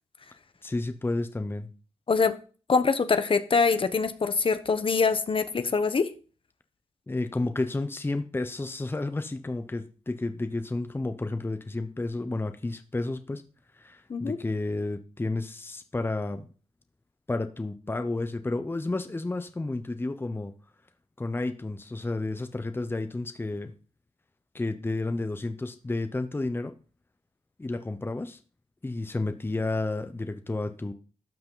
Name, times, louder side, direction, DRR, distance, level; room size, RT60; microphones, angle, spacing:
voice 1, 0.6-1.7 7.1-13.4 13.7-16.5 17.3-20.5 21.2-23.7 24.5-26.7 27.6-28.4 28.8-30.9, left 2 dB, 20° left, 9 dB, 0.8 m, -31 dB
voice 2, 2.7-6.1 14.1-14.4, left 5 dB, 50° left, 11 dB, 1.0 m, -24 dB
12.0 x 5.7 x 3.9 m, 0.38 s
cardioid pair, 65°, 11 cm